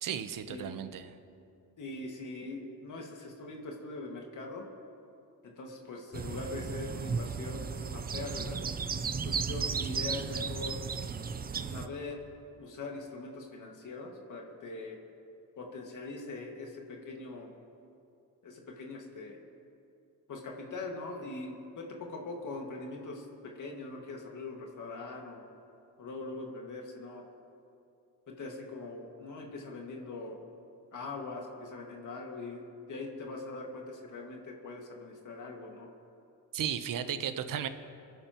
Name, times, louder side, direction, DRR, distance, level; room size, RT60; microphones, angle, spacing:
voice 1, 0.0-1.1 36.5-37.7, right 9 dB, 60° right, 10 dB, 1.0 m, -34 dB
voice 2, 1.8-4.7 5.4-8.6 9.2-10.8 11.6-12.2 12.6-15.0 15.6-17.5 18.4-19.4 20.3-25.4 26.0-27.2 28.3-30.4 30.9-35.9, left 3 dB, 55° left, 0 dB, 2.0 m, -42 dB
sound 1, 6.1-11.9, right 5 dB, 25° right, 0.6 m, -35 dB
28.5 x 11.0 x 3.1 m, 2.6 s
cardioid pair, 95°, 37 cm